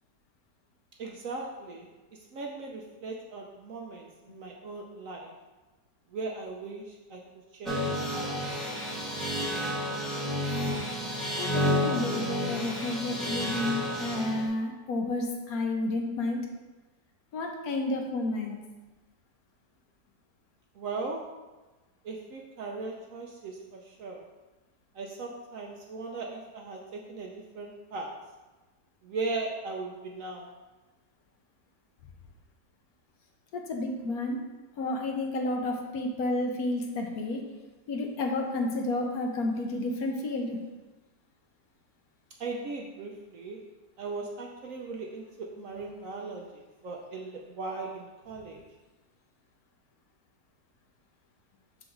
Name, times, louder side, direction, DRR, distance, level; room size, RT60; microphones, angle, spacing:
voice 1, 1.0-1.9 2.3-5.3 6.1-7.2 7.6-8.3 20.8-21.3 22.0-24.2 25.0-28.2 29.0-30.5 42.4-43.6 44.0-48.6, right 3 dB, 65° right, 1 dB, 0.9 m, -38 dB
sound 1, 7.7-14.5, equal, ahead, 1.0 m, -31 dB
voice 2, 11.4-16.4 17.3-18.6 33.5-34.4 34.8-37.4 37.9-40.6, left 2 dB, 65° left, 2 dB, 1.2 m, -31 dB
6.1 x 4.9 x 3.8 m, 1.2 s
omnidirectional pair, 1.8 m